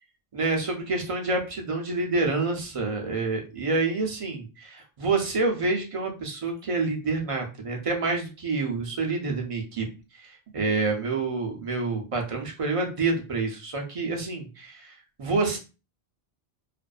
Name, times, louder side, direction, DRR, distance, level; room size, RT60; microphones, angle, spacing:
voice 1, 0.3-9.9 10.2-14.9 15.2-15.6, right 3 dB, 45° right, 1 dB, 0.5 m, -28 dB
2.5 x 2.1 x 2.3 m, 0.32 s
omnidirectional pair, 1.0 m